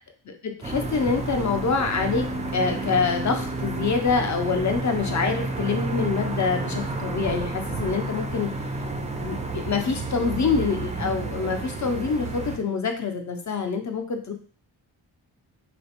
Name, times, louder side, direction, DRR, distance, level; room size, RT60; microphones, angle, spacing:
voice 1, 0.3-2.3 2.5-8.5 9.2-14.3, left 5 dB, 40° left, 5 dB, 0.5 m, -26 dB
sound 1, 0.6-12.6, right 3 dB, 15° right, 0.3 m, -30 dB
3.0 x 2.1 x 2.8 m, 0.43 s
cardioid pair, 45°, 48 cm